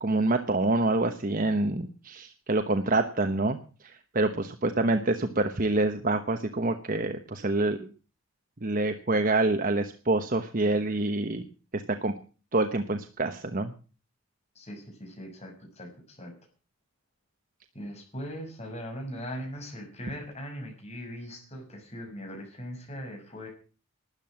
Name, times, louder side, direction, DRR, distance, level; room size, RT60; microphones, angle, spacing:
voice 1, 0.0-3.6 3.8-7.8 8.6-11.4 11.7-12.1 12.5-13.7, right 2 dB, 40° right, 8 dB, 1.1 m, -26 dB
voice 2, 14.5-16.3 17.7-23.5, equal, 30° left, 2 dB, 6.6 m, -40 dB
13.0 x 10.5 x 7.6 m, 0.38 s
head